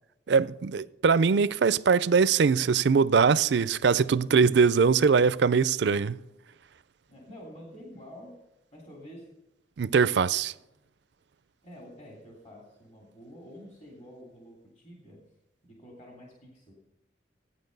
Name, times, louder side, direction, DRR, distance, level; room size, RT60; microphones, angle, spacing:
voice 1, 0.3-6.2 9.8-10.5, right 5 dB, 70° right, 0.4 m, -22 dB
voice 2, 7.1-8.3 8.7-9.3 11.6-15.2 15.6-16.7, equal, 40° left, 2.9 m, -48 dB
16.5 x 9.7 x 5.3 m
head